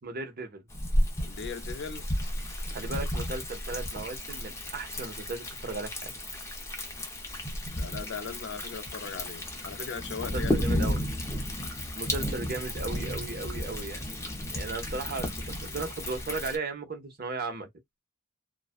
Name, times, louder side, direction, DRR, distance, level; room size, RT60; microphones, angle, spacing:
voice 1, 0.0-0.6 2.7-6.1 10.3-11.0 11.6-14.0 14.4-17.7, right 3 dB, 45° right, 0.8 m, -36 dB
Thunder, 0.7-16.6, left 1 dB, 15° left, 0.6 m, -33 dB
voice 2, 1.2-2.1 7.8-10.9, left 5 dB, 55° left, 0.5 m, -39 dB
2.4 x 2.1 x 2.4 m
head